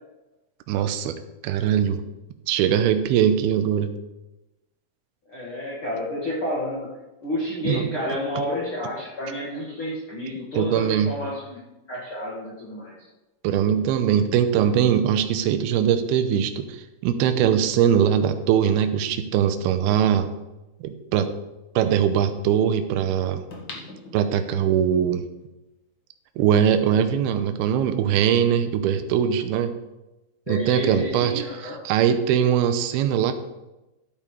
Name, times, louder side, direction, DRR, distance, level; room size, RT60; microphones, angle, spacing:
voice 1, 0.7-2.0 2.5-4.0 7.6-7.9 10.5-11.2 13.4-20.3 20.8-21.3 21.8-23.4 24.1-25.2 26.4-29.8 30.5-33.3, right 9 dB, 80° right, 8 dB, 2.6 m, -21 dB
voice 2, 5.3-6.9 7.2-11.6 11.9-12.9 30.5-31.8, left 1 dB, 45° left, -5 dB, 2.1 m, -30 dB
sound 1, 23.5-24.8 25.3-25.4, left 3 dB, 75° left, 1.0 m, -41 dB
14.5 x 8.7 x 3.2 m, 1.0 s
omnidirectional pair, 4.6 m